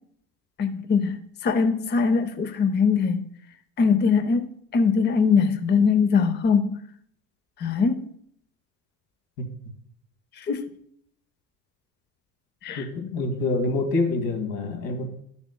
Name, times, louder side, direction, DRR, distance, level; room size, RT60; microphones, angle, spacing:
voice 1, 0.6-1.2 1.4-3.2 3.8-4.5 4.7-6.8 7.6-8.1 10.4-10.7 12.6-12.9, left 5 dB, 25° left, 0.6 m, -21 dB
voice 2, 12.8-15.1, left 2 dB, 75° left, 2.3 m, -26 dB
13.0 x 7.0 x 2.2 m
supercardioid pair, 95°, 41 cm